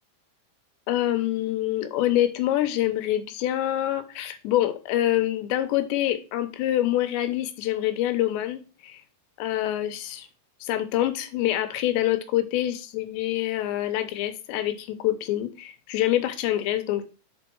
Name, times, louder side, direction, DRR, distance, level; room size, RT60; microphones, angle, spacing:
voice 1, 0.9-9.0 9.4-10.3 10.6-17.0, left 13 dB, 80° left, 3.0 m, -26 dB
7.6 x 4.4 x 4.6 m
omnidirectional pair, 5.2 m